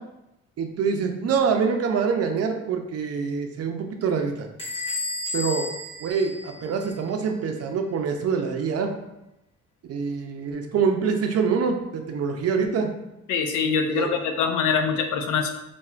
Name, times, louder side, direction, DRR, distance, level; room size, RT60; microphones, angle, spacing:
voice 1, 0.6-4.3 5.3-5.7 6.0-8.9 9.9-12.9 13.9-14.1, right 5 dB, 55° right, 4 dB, 0.5 m, -25 dB
Bell / Door, 4.6-7.1, left 2 dB, 20° left, 1.4 m, -32 dB
voice 2, 13.3-15.5, left 6 dB, 85° left, 6 dB, 0.5 m, -24 dB
4.2 x 2.3 x 2.4 m, 0.90 s
cardioid pair, 90°, 30 cm